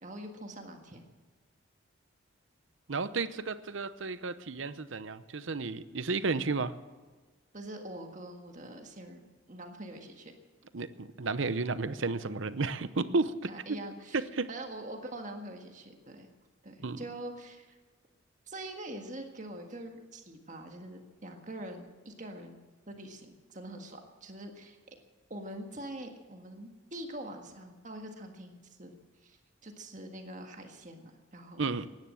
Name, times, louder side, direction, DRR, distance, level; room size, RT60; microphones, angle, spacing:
voice 1, 0.0-1.0 7.5-9.2 9.5-10.3 13.5-14.2 14.5-16.3 16.6-17.8 18.5-25.0 25.3-28.9 29.2-31.7, right 1 dB, 40° right, 4 dB, 1.7 m, -44 dB
voice 2, 2.9-6.7 10.7-13.3 14.3-14.5 16.8-17.0 31.6-31.9, right 3 dB, 75° right, 13 dB, 0.8 m, -32 dB
16.5 x 10.5 x 7.7 m, 1.3 s
head